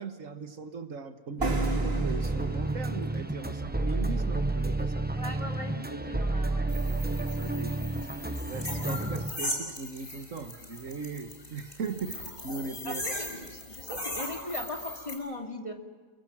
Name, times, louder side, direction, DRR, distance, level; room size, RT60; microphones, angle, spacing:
voice 1, 0.0-5.1 7.4-7.9 8.5-13.0, right 5 dB, 75° right, 8 dB, 1.8 m, -39 dB
sound 1, 1.4-9.3, right 2 dB, 10° right, 0.7 m, -30 dB
sound 2, 1.4-5.0, right 2 dB, 50° right, 2.2 m, -38 dB
voice 2, 5.1-7.3 7.5-7.6 8.8-9.0 12.8-15.7, left 1 dB, 25° left, 2 dB, 2.5 m, -40 dB
sound 3, 6.7-15.1, left 1 dB, 40° left, 5.6 m, -39 dB
29.0 x 23.0 x 6.2 m, 1.5 s
omnidirectional pair, 1.3 m